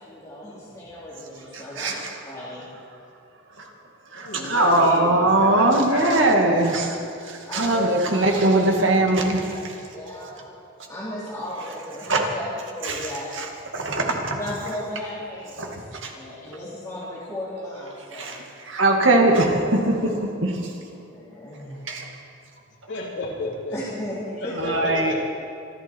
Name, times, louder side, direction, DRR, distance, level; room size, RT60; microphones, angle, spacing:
voice 1, 0.0-2.0 2.2-2.7 7.5-8.1 8.4-8.6 9.0-9.6 9.9-10.4 10.9-13.3 14.2-18.4 19.4-20.3 21.1-21.9 23.7-24.2 24.4-25.0, left 1 dB, 15° left, -9 dB, 3.3 m, -35 dB
voice 2, 1.8-2.1 4.1-9.8 12.1-12.2 12.8-13.1 13.4-13.5 13.7-14.4 15.6-15.7 16.0-16.1 18.1-18.4 18.6-20.7 21.9-22.0 24.6-25.1, right 2 dB, 65° right, 1 dB, 2.1 m, -21 dB
voice 3, 4.1-6.5 22.9-23.8 24.4-25.1, left 2 dB, 60° left, -3 dB, 3.1 m, -32 dB
26.0 x 11.0 x 4.6 m, 2.5 s
head